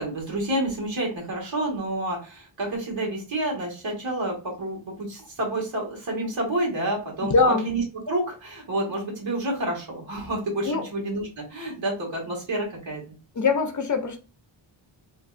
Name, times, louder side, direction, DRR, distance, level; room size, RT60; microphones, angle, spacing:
voice 1, 0.0-13.2, right 1 dB, 75° right, 1.8 m, -29 dB
voice 2, 7.2-7.7 10.6-10.8 13.4-14.2, left 3 dB, 40° left, 0.5 m, -22 dB
3.2 x 3.1 x 2.4 m
wide cardioid pair, 150°, 46 cm